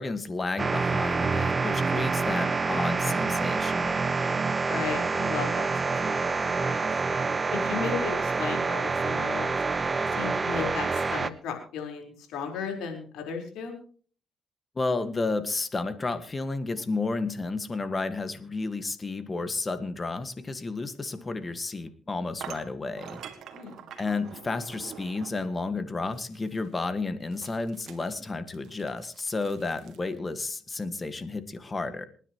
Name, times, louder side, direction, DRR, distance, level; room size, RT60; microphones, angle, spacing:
voice 1, 0.0-3.9 14.7-23.2 24.0-32.1, left 3 dB, 30° left, 11 dB, 1.7 m, -32 dB
sound 1, 0.6-11.3, right 4 dB, 30° right, 1.0 m, -27 dB
voice 2, 4.6-6.3 6.6-6.8 7.5-9.5 10.1-13.7 23.5-23.7, left 6 dB, 85° left, 3 dB, 4.4 m, -35 dB
sound 2, 21.4-21.5 22.4-25.5 26.1-26.7 27.3-30.0, right 8 dB, 75° right, 1.9 m, -46 dB
27.0 x 10.0 x 3.1 m, 0.43 s
cardioid pair, 90°, 0 cm